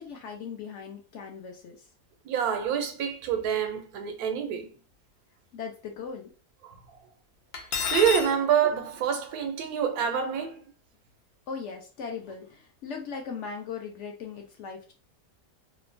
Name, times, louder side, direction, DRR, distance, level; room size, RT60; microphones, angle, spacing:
voice 1, 0.0-1.9 5.5-6.3 11.5-14.9, left 6 dB, 65° left, 0.8 m, -38 dB
voice 2, 2.2-4.7 6.6-6.8 7.9-10.7, right 8 dB, 90° right, 1.1 m, -27 dB
Cutlery silverware, 7.5-8.3, left 7 dB, 90° left, 1.1 m, -29 dB
2.9 x 2.1 x 2.5 m
omnidirectional pair, 1.6 m